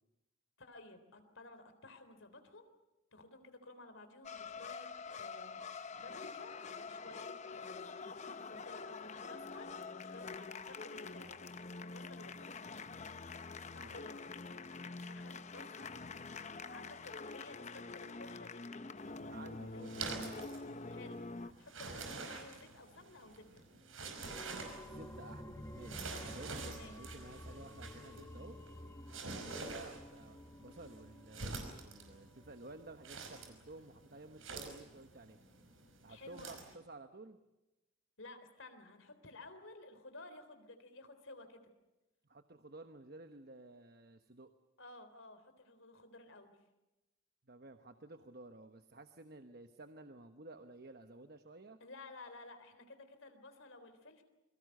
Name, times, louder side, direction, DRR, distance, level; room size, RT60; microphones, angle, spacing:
voice 1, 0.6-2.6 3.1-4.9 5.2-11.5 11.8-12.7 13.5-14.2 15.1-15.9 16.6-18.6 19.7-20.1 20.9-23.6 24.0-24.5 26.7-27.0 29.4-29.6 36.1-36.6 38.2-41.7 44.8-46.5 51.8-54.2, left 2 dB, 65° left, 9 dB, 3.6 m, -55 dB
sound 1, 4.2-21.5, left 4 dB, 35° left, 0.8 m, -46 dB
sound 2, 19.0-36.7, right 3 dB, 75° right, 5.3 m, -48 dB
voice 2, 19.3-20.4 24.8-28.6 29.3-35.4 36.0-37.4 42.3-44.5 47.5-51.8, right 2 dB, 45° right, 8 dB, 1.1 m, -53 dB
sound 3, 24.3-33.6 34.0-34.1, left 1 dB, 15° left, 1.2 m, -52 dB
28.0 x 23.5 x 6.6 m, 0.98 s
head